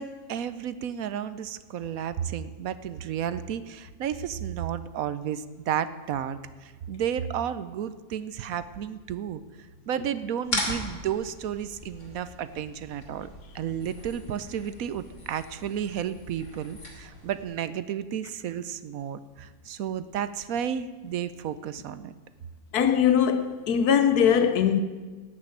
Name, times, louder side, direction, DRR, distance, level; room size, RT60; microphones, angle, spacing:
voice 1, 0.0-9.4 9.9-13.3 13.5-22.1, right 9 dB, 70° right, 1.1 m, -32 dB
sound 1, 10.4-17.4, left 1 dB, 55° left, 3.1 m, -38 dB
voice 2, 22.7-24.8, left 8 dB, 85° left, 1.3 m, -21 dB
17.5 x 6.3 x 9.0 m
omnidirectional pair, 1.6 m